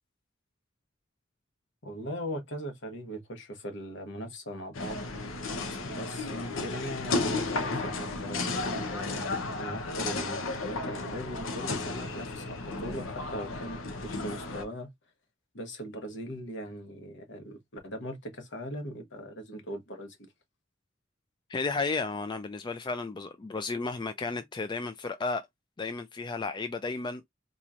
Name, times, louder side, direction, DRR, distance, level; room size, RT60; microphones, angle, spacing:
voice 1, 1.8-5.0 5.9-14.9 15.5-20.3, equal, 65° left, 1.1 m, -40 dB
sound 1, 4.7-14.6, left 3 dB, 90° left, 0.7 m, -33 dB
voice 2, 21.5-25.4 25.8-27.2, left 4 dB, 25° left, 0.3 m, -33 dB
4.0 x 3.0 x 2.4 m
head